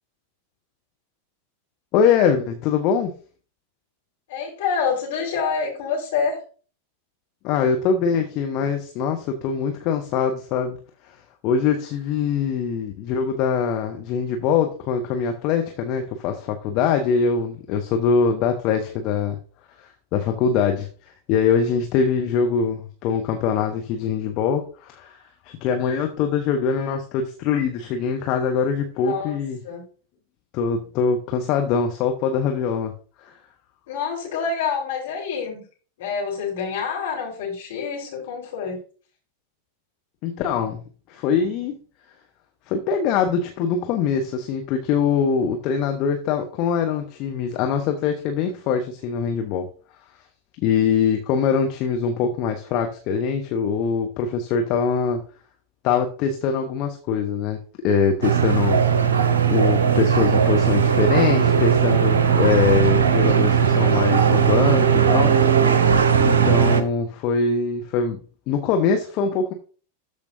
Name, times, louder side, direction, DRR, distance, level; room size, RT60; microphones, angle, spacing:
voice 1, 1.9-3.1 7.4-10.8 11.0-11.2 11.4-19.4 19.8-20.9 21.3-25.2 25.4-29.6 30.5-32.9 33.2-33.4 40.2-41.7 42.7-49.7 50.6-55.2 55.8-57.6 57.8-59.2 59.5-65.3 66.2-68.2 68.5-69.5, left 6 dB, 40° left, 4 dB, 1.0 m, -23 dB
voice 2, 4.3-6.4 28.9-29.4 29.6-29.8 33.9-35.6 36.0-38.8 63.1-63.5, left 6 dB, 55° left, -2 dB, 3.9 m, -27 dB
sound 1, 58.2-66.8, right 7 dB, 65° right, 0.8 m, -18 dB
13.0 x 5.1 x 2.7 m, 0.39 s
figure-of-eight pair, 90°, 0 cm